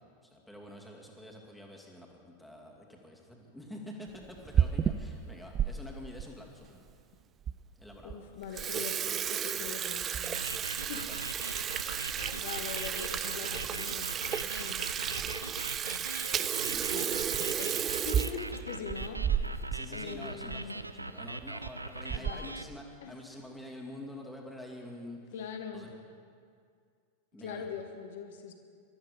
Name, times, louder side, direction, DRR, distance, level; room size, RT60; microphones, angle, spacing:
voice 1, 0.2-6.8 7.8-8.2 10.9-11.7 15.3-15.5 19.7-25.2 25.7-25.9 27.3-27.7, left 1 dB, 5° left, -1 dB, 2.5 m, -47 dB
Water tap faucet / Sink (filling or washing), 4.3-5.7 6.2-6.3 7.0-7.1 7.5-7.6 7.9-8.1 8.4-19.8 20.1-20.2 20.5-20.6 21.4-21.7 22.1-22.5, right 9 dB, 25° right, 0.5 m, -32 dB
voice 2, 8.0-9.0 9.3-11.0 12.3-14.2 14.4-14.9 16.9-19.6 19.9-20.8 22.1-22.5 23.0-23.2 25.3-25.9 27.4-28.5, left 7 dB, 55° left, 5 dB, 1.8 m, -42 dB
sound 1, 10.2-22.6, right 2 dB, 85° right, 0.5 m, -41 dB
22.0 x 13.0 x 5.1 m, 2.2 s
figure-of-eight pair, 90°, 0 cm